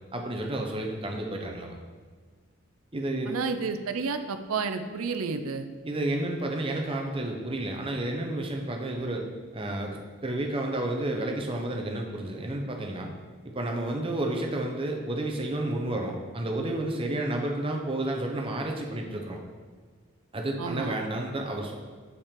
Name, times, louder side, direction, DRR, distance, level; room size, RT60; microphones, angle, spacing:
voice 1, 0.1-1.8 2.9-3.3 5.8-9.2 9.5-13.1 13.5-19.4 20.3-21.7, right 1 dB, 25° right, 2 dB, 0.7 m, -31 dB
voice 2, 3.3-5.7 20.6-21.0, right 4 dB, 75° right, 8 dB, 0.5 m, -31 dB
6.6 x 5.3 x 3.7 m, 1.5 s
head